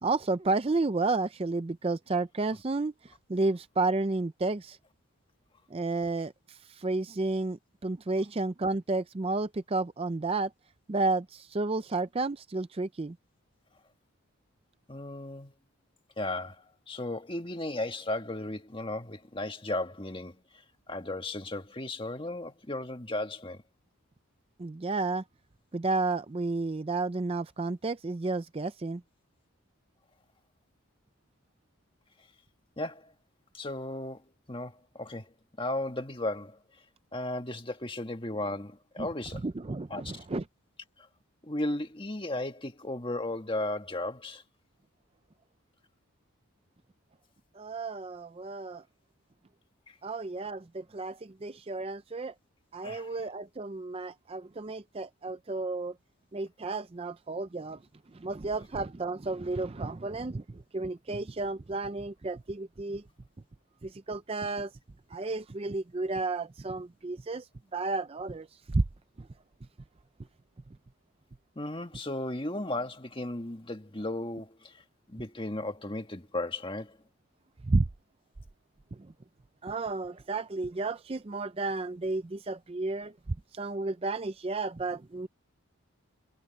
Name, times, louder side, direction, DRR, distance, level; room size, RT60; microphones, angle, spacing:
voice 1, 0.0-4.8 5.7-10.5 10.9-13.2 24.6-25.2 25.7-29.0 39.0-39.1 39.4-40.4 47.5-48.8 50.0-52.3 52.7-55.9 56.3-57.8 58.1-63.0 63.8-64.7 65.1-67.5 67.7-68.8 69.2-69.3 77.6-77.9 79.6-83.1 83.5-85.3, right 3 dB, 25° right, 0.4 m, -32 dB
voice 2, 14.9-15.5 16.2-20.4 20.9-23.6 32.8-33.1 33.5-34.2 34.5-35.3 35.6-36.6 37.1-39.4 39.9-40.2 41.0-41.1 41.4-44.4 49.9-50.0 52.8-53.1 71.5-74.8 75.1-77.0, left 2 dB, 25° left, 1.7 m, -35 dB
head